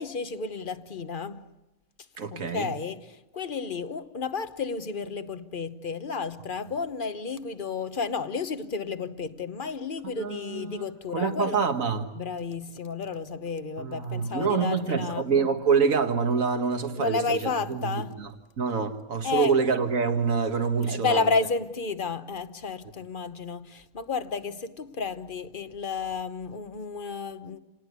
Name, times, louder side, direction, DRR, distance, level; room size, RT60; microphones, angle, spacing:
voice 1, 0.0-1.4 2.3-11.6 12.2-15.2 17.0-18.2 19.2-19.5 20.9-27.6, left 4 dB, 40° left, 1.1 m, -32 dB
voice 2, 2.2-2.7 10.0-10.8 11.1-12.1 13.8-18.3 18.6-21.3, right 5 dB, 70° right, 2.0 m, -26 dB
28.5 x 19.0 x 8.2 m
omnidirectional pair, 1.5 m